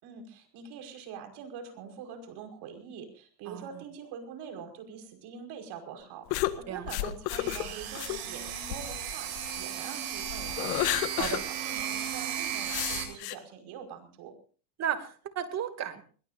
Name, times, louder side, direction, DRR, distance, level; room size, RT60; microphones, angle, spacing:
voice 1, 0.0-9.3 9.6-10.7 11.2-14.3, right 7 dB, 50° right, 5 dB, 5.5 m, -44 dB
sound 1, 6.3-9.6 10.1-11.4 11.8-11.9 12.7-13.4, left 16 dB, 70° left, 1.7 m, -32 dB
sound 2, 7.3-13.0, right 9 dB, 70° right, 7.9 m, -35 dB
voice 2, 14.8-16.0, right 9 dB, 30° right, 8 dB, 2.6 m, -34 dB
23.0 x 21.0 x 2.7 m, 0.42 s
supercardioid pair, 130°, 49 cm